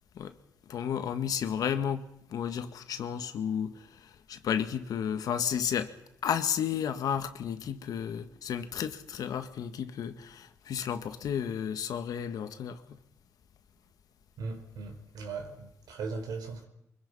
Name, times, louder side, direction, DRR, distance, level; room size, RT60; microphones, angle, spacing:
voice 1, 0.6-5.9 6.2-13.0, left 8 dB, 70° left, 1.8 m, -32 dB
voice 2, 14.4-16.7, right 4 dB, 80° right, 4.6 m, -38 dB
24.0 x 23.0 x 5.6 m
cardioid pair, 95°, 6 cm